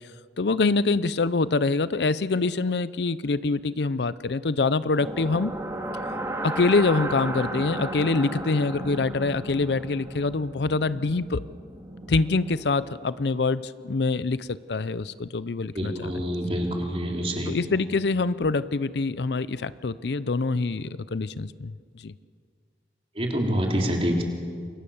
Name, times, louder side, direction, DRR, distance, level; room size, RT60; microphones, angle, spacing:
voice 1, 0.4-5.5 6.4-11.4 12.1-16.1 17.5-22.1, left 3 dB, 70° left, 17 dB, 0.6 m, -25 dB
sound 1, 4.9-13.0, right 1 dB, 15° right, 2.4 m, -34 dB
voice 2, 15.7-17.6 23.2-24.2, equal, 35° right, 1 dB, 3.5 m, -26 dB
28.5 x 22.5 x 7.1 m, 2.1 s
head